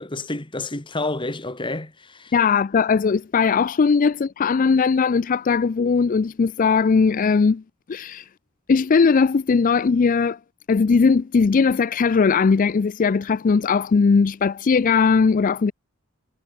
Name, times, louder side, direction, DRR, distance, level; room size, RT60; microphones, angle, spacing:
voice 1, 0.0-2.3, left 2 dB, 25° left, 1.9 m, -29 dB
voice 2, 2.3-7.6 7.9-8.3 8.7-10.4 10.7-15.7, left 5 dB, 40° left, 0.4 m, -19 dB
head